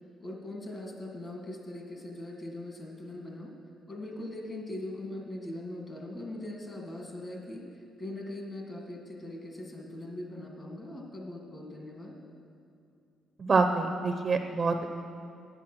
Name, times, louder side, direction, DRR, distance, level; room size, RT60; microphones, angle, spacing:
voice 1, 0.2-3.5 3.9-12.2, left 1 dB, 35° left, 0 dB, 1.8 m, -41 dB
voice 2, 13.4-14.9, right 4 dB, 35° right, 6 dB, 0.7 m, -26 dB
9.1 x 8.3 x 6.1 m, 2.5 s
cardioid pair, 90°, 0 cm